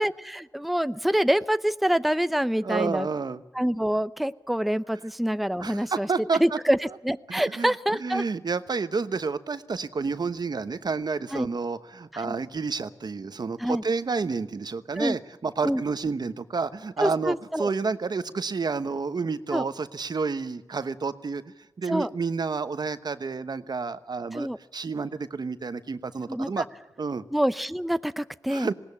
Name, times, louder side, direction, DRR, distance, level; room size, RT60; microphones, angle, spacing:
voice 1, 0.0-3.1 3.5-6.1 6.4-8.2 11.3-11.5 12.1-12.3 13.6-13.8 15.0-15.2 15.6-15.8 17.0-17.7 19.5-19.7 21.9-22.1 24.3-24.6 26.3-26.6 27.3-28.7, equal, ahead, 14 dB, 0.6 m, -26 dB
voice 2, 2.6-3.4 5.6-6.6 7.3-7.7 8.0-21.4 21.8-24.5 24.7-26.6 27.0-27.2 28.5-28.7, right 4 dB, 65° right, 12 dB, 1.1 m, -30 dB
20.0 x 18.0 x 8.5 m, 1.1 s
cardioid pair, 55°, 8 cm